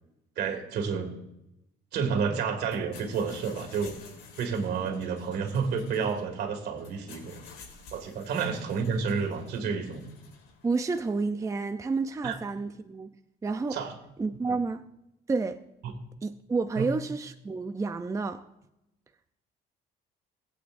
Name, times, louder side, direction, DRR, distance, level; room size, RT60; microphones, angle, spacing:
voice 1, 0.4-1.1 1.9-4.0 4.4-7.4 7.9-10.0 12.2-12.3 13.7-13.9 14.5-14.6 15.8-15.9 16.8-16.9, right 5 dB, 75° right, 2.2 m, -30 dB
sound 1, 2.6-11.2, left 4 dB, 90° left, 3.7 m, -52 dB
voice 2, 10.6-13.1 13.4-13.8 14.2-14.8 15.3-15.6 16.2-18.4, right 4 dB, 20° right, 0.5 m, -30 dB
20.0 x 8.7 x 2.6 m
cardioid pair, 110°, 17 cm